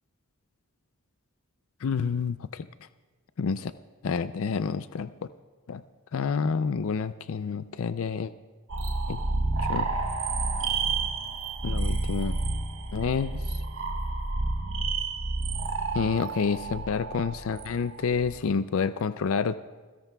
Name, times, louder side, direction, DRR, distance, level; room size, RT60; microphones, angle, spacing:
voice 1, 1.8-2.7 3.4-3.7 4.0-5.1 5.7-5.8 6.1-8.3 9.1-9.2 9.6-9.9 11.6-12.4 12.9-13.6 15.9-19.6, left 5 dB, 70° left, 13 dB, 0.4 m, -28 dB
sound 1, 8.7-18.3, right 3 dB, 65° right, 1.4 m, -30 dB
29.5 x 16.5 x 2.3 m, 1.3 s
head